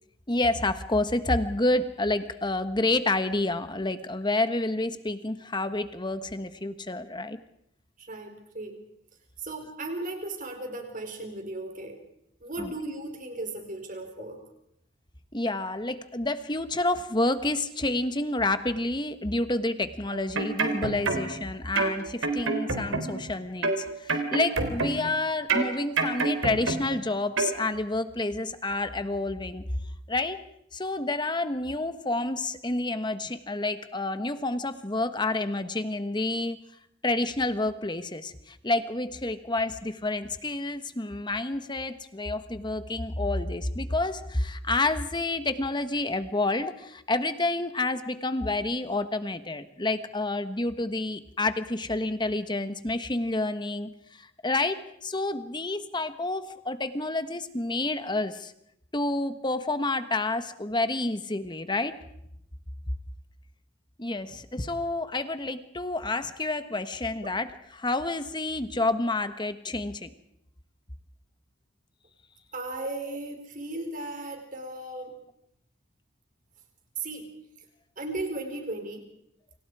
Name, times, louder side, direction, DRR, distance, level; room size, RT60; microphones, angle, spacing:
voice 1, 0.3-7.4 12.6-12.7 15.3-29.6 30.1-30.4 30.7-36.6 37.0-53.9 54.4-58.5 58.9-61.9 64.0-67.5 67.7-70.1, left 2 dB, 20° left, 10 dB, 1.4 m, -29 dB
voice 2, 8.0-8.8 9.4-12.0 12.4-14.4 67.2-67.3 72.5-75.1 77.0-77.3 78.0-79.1, right 2 dB, 40° right, 4 dB, 4.8 m, -36 dB
sound 1, 20.1-21.4 21.8-23.3 23.6-25.2 25.5-27.0 27.4-27.6, right 3 dB, 85° right, 3.7 m, -28 dB
29.0 x 26.5 x 4.9 m, 0.77 s
head